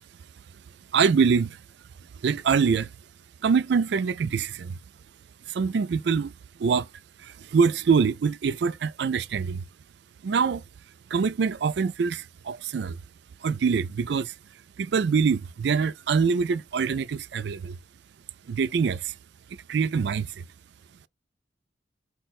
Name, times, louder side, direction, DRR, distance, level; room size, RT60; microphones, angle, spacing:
voice 1, 0.9-1.6 2.2-2.9 3.4-4.8 5.5-6.3 6.6-6.9 7.2-9.6 10.2-10.6 11.1-13.0 13.4-14.3 14.8-17.8 18.5-19.1 19.7-20.3, right 5 dB, 60° right, 0.3 m, -24 dB
5.3 x 2.1 x 4.1 m
head